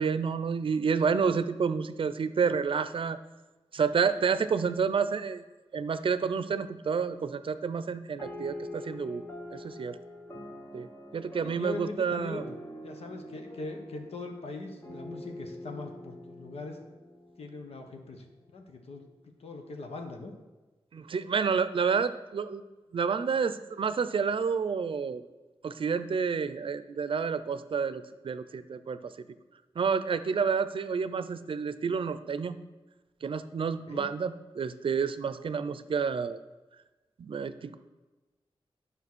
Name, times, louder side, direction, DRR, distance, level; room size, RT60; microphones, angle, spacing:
voice 1, 0.0-3.2 3.7-5.4 5.7-10.0 10.7-10.9 11.1-12.5 20.9-22.6 22.9-25.2 25.6-29.1 29.8-32.6 33.2-36.4 37.2-37.8, right 6 dB, 60° right, 13 dB, 0.5 m, -29 dB
sound 1, 8.2-17.9, left 1 dB, 30° left, 1.2 m, -45 dB
voice 2, 11.4-12.4 12.8-16.8 17.4-18.2 18.5-19.1 19.4-20.3 33.9-34.1, left 3 dB, 85° left, 4 dB, 1.4 m, -41 dB
9.9 x 5.6 x 6.2 m, 1.2 s
wide cardioid pair, 115°, 10 cm